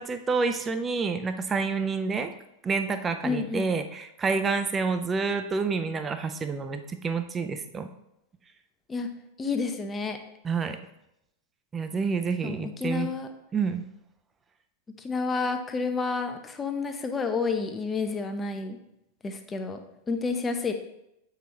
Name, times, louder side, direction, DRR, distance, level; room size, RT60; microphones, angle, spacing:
voice 1, 0.0-2.3 2.6-7.9 10.4-10.8 11.7-13.1 13.5-13.8, right 4 dB, 20° right, 8 dB, 0.5 m, -28 dB
voice 2, 3.2-3.7 8.9-9.1 9.4-10.2 12.4-13.3 15.0-18.8 19.2-19.8 20.1-20.7, left 4 dB, 15° left, 6 dB, 0.7 m, -30 dB
7.8 x 4.8 x 3.0 m, 0.83 s
figure-of-eight pair, 90°, 0 cm